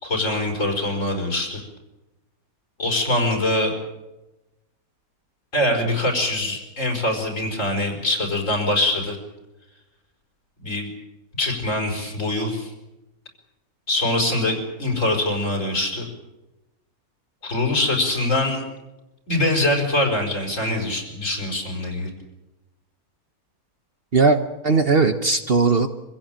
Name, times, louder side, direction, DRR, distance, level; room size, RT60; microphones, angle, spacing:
voice 1, 0.0-1.6 2.8-3.7 5.5-9.2 10.6-10.9 11.4-12.7 13.9-16.1 17.4-18.6 19.3-22.1, left 1 dB, 60° left, 2 dB, 5.3 m, -23 dB
voice 2, 24.1-25.9, right 4 dB, 45° right, 8 dB, 1.1 m, -18 dB
25.5 x 16.0 x 8.9 m, 1.0 s
omnidirectional pair, 1.5 m